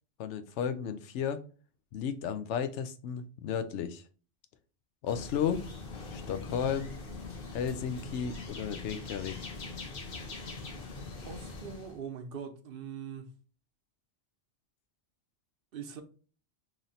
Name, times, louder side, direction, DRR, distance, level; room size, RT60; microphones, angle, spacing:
voice 1, 0.2-1.4 1.9-4.0 5.0-5.6 6.1-6.9 7.5-9.4, left 7 dB, 85° left, 0.9 m, -33 dB
sound 1, 5.1-12.0, left 3 dB, 55° left, 1.0 m, -42 dB
voice 2, 11.3-13.3 15.7-16.0, right 7 dB, 60° right, 0.7 m, -42 dB
3.1 x 2.7 x 3.9 m
omnidirectional pair, 1.2 m